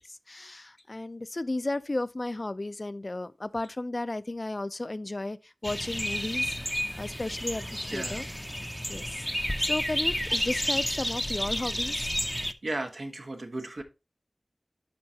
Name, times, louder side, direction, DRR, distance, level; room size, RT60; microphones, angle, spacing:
voice 1, 0.1-8.3 8.9-12.0, left 2 dB, 45° left, 0.4 m, -34 dB
sound 1, 5.6-12.5, equal, 5° left, 0.6 m, -31 dB
voice 2, 12.6-13.8, right 2 dB, 75° right, 1.2 m, -35 dB
11.0 x 4.4 x 2.8 m
wide cardioid pair, 45°, 0 cm